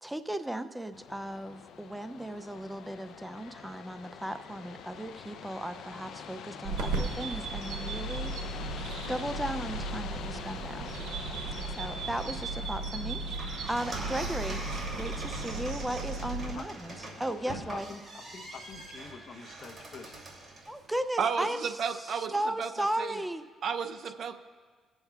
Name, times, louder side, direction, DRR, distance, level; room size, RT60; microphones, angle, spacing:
voice 1, 0.0-8.3 9.1-10.9 11.7-14.6 14.9-17.9 20.7-23.4, right 1 dB, 5° right, 10 dB, 0.3 m, -36 dB
sound 1, 0.9-17.8, left 7 dB, 75° left, 0.5 m, -45 dB
sound 2, 6.6-16.6, right 3 dB, 90° right, 1.0 m, -36 dB
sound 3, 13.2-20.8, right 2 dB, 35° right, 2.6 m, -42 dB
voice 2, 17.4-20.2, left 5 dB, 55° left, 6 dB, 0.9 m, -46 dB
voice 3, 21.2-22.7 23.0-23.2 23.6-24.4, right 6 dB, 65° right, 9 dB, 0.5 m, -32 dB
20.5 x 7.1 x 2.3 m, 1.5 s
cardioid pair, 90°, 0 cm